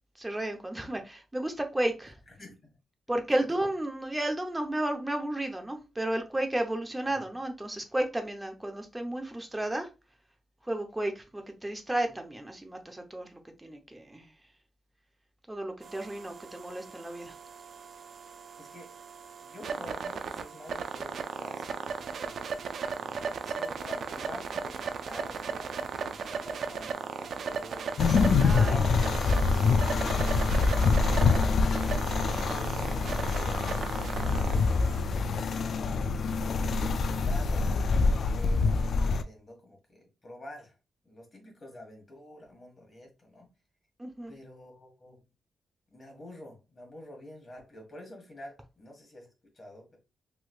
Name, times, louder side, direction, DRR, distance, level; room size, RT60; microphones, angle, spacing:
voice 1, 0.2-2.1 3.1-9.9 10.7-14.3 15.5-17.3 28.4-28.9 44.0-44.3, right 1 dB, 10° right, 0.7 m, -33 dB
voice 2, 2.3-2.8 3.5-3.6 7.0-7.3 18.6-18.9 19.4-22.1 22.9-27.9 28.7-31.8 32.5-36.1 36.8-40.8 41.0-43.5 44.3-45.2 45.9-50.0, left 1 dB, 30° left, 1.5 m, -48 dB
sound 1, 15.8-35.0, right 5 dB, 65° right, 0.4 m, -36 dB
sound 2, 28.0-39.2, left 4 dB, 60° left, 0.3 m, -25 dB
3.2 x 3.1 x 2.3 m
cardioid pair, 120°, 0 cm